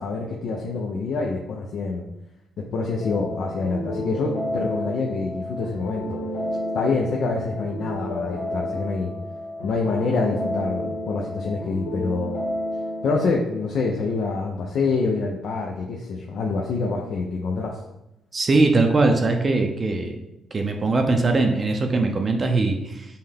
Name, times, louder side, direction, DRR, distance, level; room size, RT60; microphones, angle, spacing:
voice 1, 0.0-2.0 2.6-6.2 6.7-9.1 9.6-12.3 13.0-17.8, left 4 dB, 70° left, 0 dB, 0.5 m, -26 dB
sound 1, 3.0-13.3, left 1 dB, 85° left, 1.1 m, -31 dB
voice 2, 18.3-20.2 20.5-23.1, right 3 dB, 35° right, 4 dB, 0.5 m, -21 dB
5.4 x 2.2 x 3.4 m, 0.89 s
cardioid pair, 90°, 0 cm